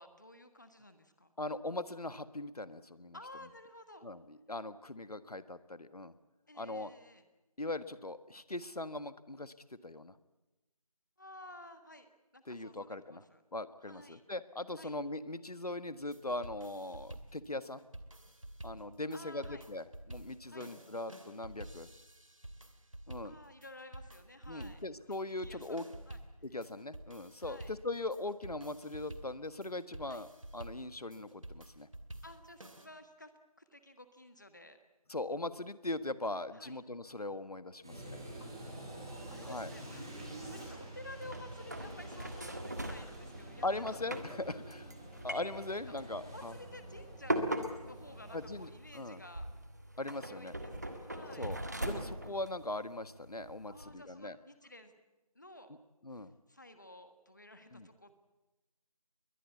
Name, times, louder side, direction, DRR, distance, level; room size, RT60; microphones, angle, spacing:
voice 1, 0.0-1.3 3.1-4.0 6.5-7.2 11.2-13.4 13.8-14.2 14.8-15.0 19.1-19.7 20.5-20.7 23.2-24.8 25.4-26.2 27.4-27.7 30.0-30.2 32.2-33.3 33.6-34.8 36.5-36.8 38.4-38.8 39.3-44.0 44.5-44.8 45.1-45.2 45.7-47.4 47.8-49.5 50.3-51.5 53.7-54.9 55.3-55.7 56.1-58.2, left 1 dB, 30° left, 9 dB, 1.4 m, -53 dB
voice 2, 1.4-3.2 4.0-6.1 6.6-6.9 7.6-9.5 9.8-10.1 12.5-13.2 13.5-17.8 18.6-21.9 23.1-23.3 24.5-25.9 26.4-31.9 35.1-38.2 39.4-39.7 43.6-44.9 45.2-46.5 48.3-49.2 50.0-50.5 51.4-54.4 56.0-56.3 57.7-57.9, left 2 dB, 80° left, 13 dB, 1.5 m, -40 dB
sound 1, 16.0-32.9, right 1 dB, 60° right, 2.5 m, -50 dB
sound 2, 37.8-48.6, right 1 dB, 5° right, 1.7 m, -48 dB
sound 3, 40.2-53.9, right 1 dB, 30° right, 1.6 m, -42 dB
22.0 x 19.5 x 8.3 m, 1.0 s
figure-of-eight pair, 175°, 19 cm